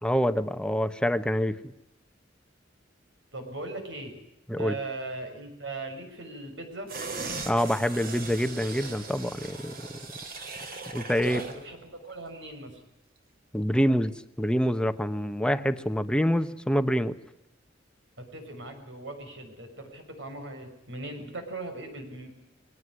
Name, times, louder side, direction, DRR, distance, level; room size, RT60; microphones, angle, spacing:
voice 1, 0.0-1.6 4.5-4.7 7.5-9.7 10.9-11.4 13.5-14.1 14.4-17.1, equal, 5° left, 11 dB, 1.1 m, -26 dB
voice 2, 3.3-4.2 4.6-6.9 11.2-12.8 18.3-22.3, right 2 dB, 70° right, 5 dB, 6.3 m, -39 dB
sound 1, 6.9-11.6 12.0-12.1, right 3 dB, 55° right, 3.8 m, -38 dB
22.5 x 18.0 x 9.7 m, 0.89 s
head